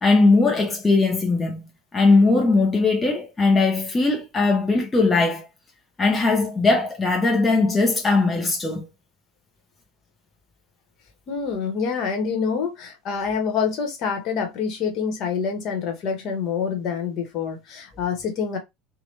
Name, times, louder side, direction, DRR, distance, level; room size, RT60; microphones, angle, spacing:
voice 1, 0.0-1.6 1.9-5.5 6.0-8.9, left 3 dB, 20° left, 0.7 m, -19 dB
voice 2, 11.3-18.6, left 6 dB, 50° left, 1.1 m, -26 dB
2.9 x 2.2 x 3.2 m
figure-of-eight pair, 70°, 0 cm